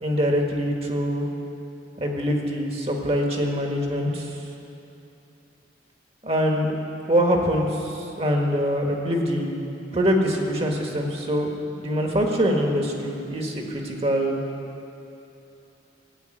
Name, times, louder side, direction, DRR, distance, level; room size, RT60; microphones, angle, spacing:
voice 1, 0.0-1.3 2.0-4.4 6.2-6.8 7.1-9.6 9.9-14.4, equal, 35° right, 1 dB, 1.6 m, -24 dB
14.0 x 8.4 x 9.1 m, 2.9 s
head